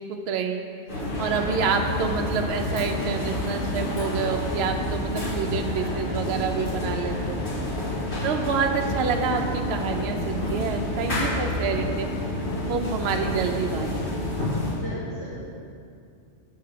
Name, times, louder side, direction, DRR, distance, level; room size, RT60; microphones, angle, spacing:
voice 1, 0.1-0.6 1.2-7.4 8.2-12.2 12.7-14.1, right 5 dB, 65° right, 4 dB, 0.8 m, -28 dB
sound 1, 0.9-14.7, left 1 dB, 45° left, 2.0 m, -29 dB
voice 2, 6.9-7.2 7.9-8.4 14.7-15.5, left 1 dB, 65° left, -11 dB, 2.0 m, -39 dB
6.7 x 4.7 x 6.6 m, 2.4 s
omnidirectional pair, 1.2 m